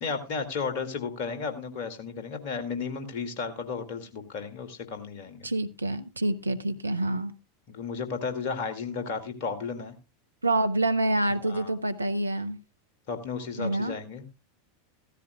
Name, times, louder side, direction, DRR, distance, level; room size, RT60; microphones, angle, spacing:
voice 1, 0.0-5.5 7.7-9.9 11.4-11.7 13.1-14.2, left 5 dB, 50° left, 2.1 m, -33 dB
voice 2, 5.4-7.3 10.4-12.6 13.6-14.0, right 1 dB, 85° right, 0.7 m, -27 dB
15.5 x 13.5 x 2.3 m
figure-of-eight pair, 85°, 0 cm